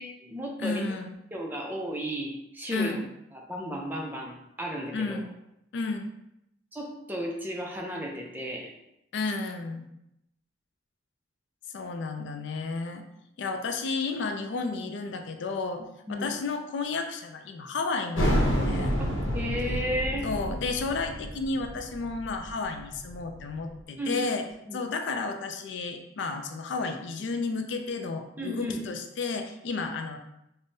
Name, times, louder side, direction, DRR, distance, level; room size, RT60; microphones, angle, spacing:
voice 1, 0.0-0.9 1.3-2.9 3.3-5.2 6.7-8.7 16.1-16.3 19.0-20.3 24.0-24.3 24.7-24.9 28.4-28.9, equal, 10° right, -1 dB, 0.4 m, -34 dB
voice 2, 0.6-1.2 2.7-3.1 4.9-5.3 5.7-6.1 9.1-9.9 11.7-13.1 13.4-15.8 16.1-18.9 20.2-24.4 24.7-30.2, left 3 dB, 65° left, 6 dB, 0.4 m, -32 dB
sound 1, 18.1-23.5, equal, 85° left, 0.8 m, -29 dB
5.1 x 2.1 x 2.6 m, 0.84 s
head